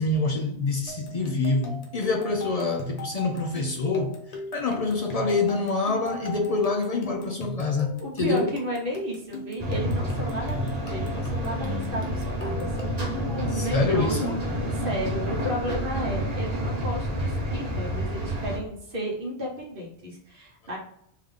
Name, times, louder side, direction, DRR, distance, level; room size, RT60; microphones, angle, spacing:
voice 1, 0.0-4.2 4.5-8.5 13.5-14.3, left 3 dB, 55° left, 0.4 m, -26 dB
sound 1, 0.9-13.2, equal, 40° left, 0.8 m, -38 dB
voice 2, 8.0-14.3 14.8-20.8, equal, 55° right, 1.3 m, -33 dB
sound 2, 9.6-18.6, equal, 40° right, 1.0 m, -29 dB
3.5 x 2.8 x 3.6 m
omnidirectional pair, 1.1 m